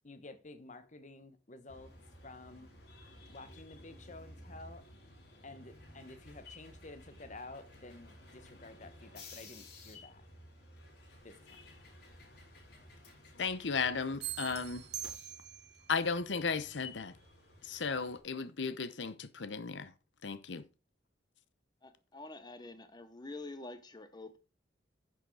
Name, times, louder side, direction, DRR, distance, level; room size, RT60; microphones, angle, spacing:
voice 1, 0.0-1.9 2.2-2.7 3.3-4.8 5.4-10.2 11.2-11.6, left 2 dB, 40° left, 1.2 m, -51 dB
sound 1, 1.7-18.2, left 2 dB, 65° left, 5.3 m, -54 dB
voice 2, 13.4-14.8 15.9-17.1 17.6-19.9 20.2-20.6, left 5 dB, 80° left, 0.8 m, -35 dB
sound 2, 14.2-15.9, right 12 dB, 60° right, 0.9 m, -42 dB
voice 3, 21.8-24.4, left 2 dB, 25° left, 0.9 m, -47 dB
10.5 x 6.4 x 4.7 m
head